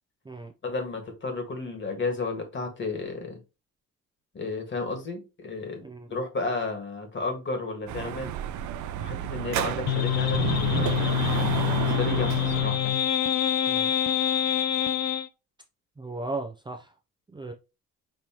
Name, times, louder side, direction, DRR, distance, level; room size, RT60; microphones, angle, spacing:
voice 1, 0.6-3.4 4.3-5.8 6.1-8.3 9.0-13.0, left 3 dB, 40° left, 1.8 m, -33 dB
Dog / Motorcycle, 7.9-12.8, right 10 dB, 75° right, 0.6 m, -31 dB
sound 1, 9.9-15.3, left 11 dB, 60° left, 0.6 m, -25 dB
voice 2, 16.0-16.9 17.3-17.5, right 2 dB, 15° right, 0.6 m, -36 dB
5.3 x 3.0 x 2.9 m
cardioid pair, 90°, 30 cm